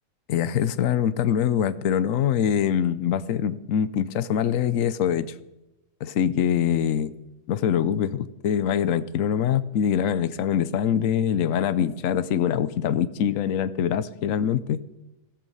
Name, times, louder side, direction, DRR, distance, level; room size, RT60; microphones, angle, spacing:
voice 1, 0.3-5.3 6.0-7.1 7.5-14.8, left 9 dB, 75° left, 15 dB, 1.1 m, -24 dB
14.5 x 14.0 x 5.5 m, 0.96 s
omnidirectional pair, 1.4 m